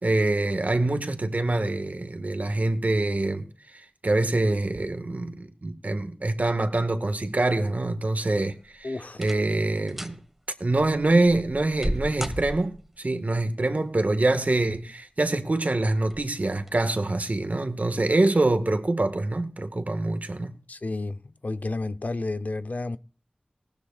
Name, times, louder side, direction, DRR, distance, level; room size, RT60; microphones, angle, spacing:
voice 1, 0.0-8.9 9.2-10.2 10.6-20.6, right 2 dB, 65° right, 1.7 m, -25 dB
sound 1, 8.6-8.7 9.1-9.6 9.9-10.2 10.8-13.0 14.2-14.7 15.2-15.3 16.0-16.2 16.6-16.7, equal, 10° right, 1.5 m, -34 dB
voice 2, 8.8-9.2 20.7-23.0, left 2 dB, 70° left, 0.8 m, -31 dB
19.0 x 12.5 x 2.5 m
wide cardioid pair, 50°, 3 cm